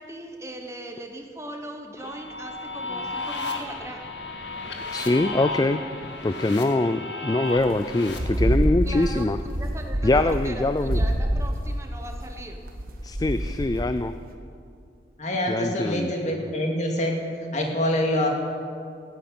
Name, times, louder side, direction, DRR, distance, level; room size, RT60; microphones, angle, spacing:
voice 1, 0.0-4.1 8.8-12.6, right 1 dB, 15° right, 4 dB, 1.0 m, -39 dB
sound 1, 2.0-8.2, left 3 dB, 70° left, 1.9 m, -34 dB
voice 2, 4.9-5.8 6.2-9.4 10.0-11.0 13.0-14.1 15.5-16.1, left 2 dB, 20° left, 11 dB, 0.3 m, -23 dB
sound 2, 7.6-7.8 8.1-9.0 9.4-10.5 10.8-13.9, right 1 dB, 50° right, 1.6 m, -26 dB
voice 3, 15.2-17.1 17.5-18.3, left 1 dB, 40° left, 0 dB, 2.3 m, -25 dB
16.0 x 9.2 x 9.3 m, 2.4 s
head